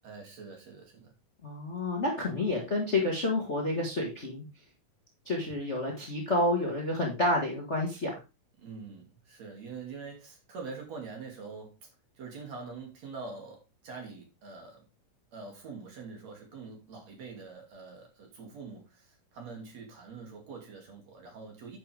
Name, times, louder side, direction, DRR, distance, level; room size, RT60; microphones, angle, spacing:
voice 1, 0.0-1.1 2.6-2.7 8.6-11.7 12.2-14.8 15.3-21.8, right 4 dB, 55° right, 1 dB, 3.6 m, -44 dB
voice 2, 1.4-4.4 5.2-8.1, left 2 dB, 25° left, -1 dB, 1.6 m, -29 dB
10.0 x 6.8 x 3.5 m, 0.28 s
omnidirectional pair, 3.9 m